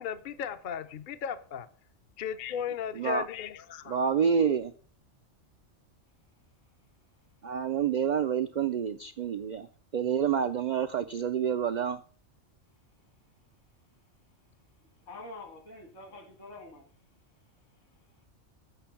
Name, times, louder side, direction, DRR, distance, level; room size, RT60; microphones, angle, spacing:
voice 1, 0.0-1.7 2.2-4.0, left 8 dB, 55° left, 10 dB, 0.6 m, -36 dB
voice 2, 3.0-3.3 3.9-4.7 7.4-9.7 9.9-12.0, right 7 dB, 75° right, 10 dB, 0.4 m, -28 dB
voice 3, 15.0-16.9 17.7-18.3, left 2 dB, 70° left, 6 dB, 2.1 m, -47 dB
8.3 x 5.9 x 5.7 m, 0.42 s
omnidirectional pair, 1.3 m